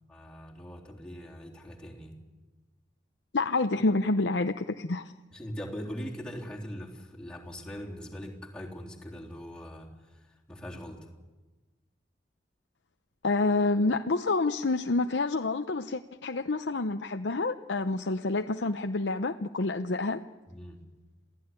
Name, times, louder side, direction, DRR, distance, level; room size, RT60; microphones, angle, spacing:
voice 1, 0.1-2.2 5.3-11.1 20.5-20.8, equal, 5° left, -3 dB, 3.5 m, -41 dB
voice 2, 3.3-5.1 13.2-20.2, left 3 dB, 75° left, 7 dB, 0.8 m, -28 dB
28.0 x 17.0 x 9.7 m, 1.2 s
head